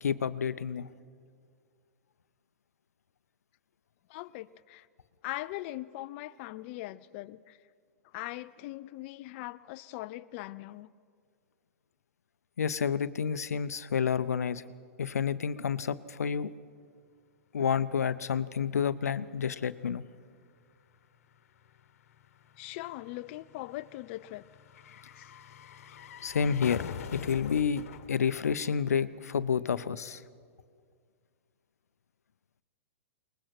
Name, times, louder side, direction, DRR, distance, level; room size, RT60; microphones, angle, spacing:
voice 1, 0.0-0.9 12.6-14.6 15.0-16.5 17.5-20.1 26.2-30.2, left 7 dB, 85° left, 15 dB, 0.7 m, -30 dB
voice 2, 4.1-4.9 5.2-7.6 8.1-10.9 22.6-24.4 25.2-25.3, left 17 dB, 50° left, 13 dB, 0.5 m, -40 dB
sound 1, 18.7-18.8 19.0-29.4 29.6-29.7, left 8 dB, 70° left, 1.2 m, -46 dB
22.0 x 20.0 x 6.0 m, 2.1 s
hypercardioid pair, 115°, 8 cm